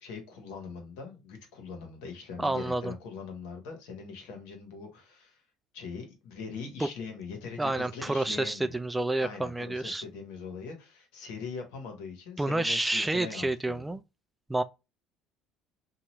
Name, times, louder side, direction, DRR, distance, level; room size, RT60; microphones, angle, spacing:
voice 1, 0.0-5.4 5.7-8.8 9.2-13.9, left 5 dB, 75° left, 1.1 m, -42 dB
voice 2, 2.4-2.9 6.8-6.9 7.6-10.0 12.4-14.0 14.5-14.6, right 2 dB, 10° right, 0.3 m, -29 dB
2.8 x 2.4 x 2.9 m
hypercardioid pair, 65°, 0 cm